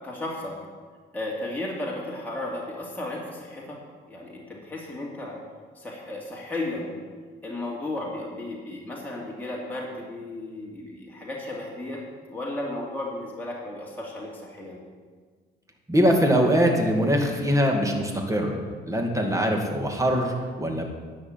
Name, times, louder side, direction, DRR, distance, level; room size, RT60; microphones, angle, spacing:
voice 1, 0.0-0.6 1.1-3.8 4.1-5.4 5.8-6.9 7.4-12.0 12.3-14.8, left 2 dB, 10° left, -4 dB, 2.5 m, -34 dB
voice 2, 15.9-18.6 18.8-20.8, equal, 15° right, 2 dB, 2.2 m, -22 dB
10.5 x 6.3 x 8.9 m, 1.6 s
cardioid pair, 90°, 20 cm